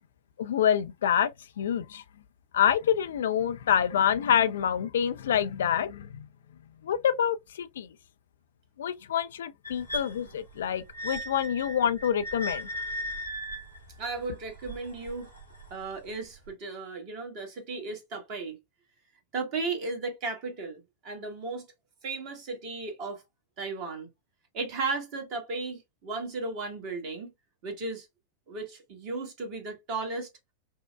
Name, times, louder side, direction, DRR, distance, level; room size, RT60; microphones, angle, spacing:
voice 1, 0.4-1.3 1.6-2.0 2.5-6.3 6.8-7.9 8.8-12.7, left 9 dB, 60° left, 0.3 m, -26 dB
sound 1, 9.6-15.7 16.5-16.6, equal, 85° right, 1.3 m, -38 dB
voice 2, 14.0-15.3 15.7-18.6 19.3-21.7 22.0-23.2 23.6-24.1 24.5-27.3 27.6-28.1 28.5-30.3, right 3 dB, 40° right, 1.3 m, -35 dB
5.3 x 2.1 x 2.2 m
figure-of-eight pair, 90°, 0 cm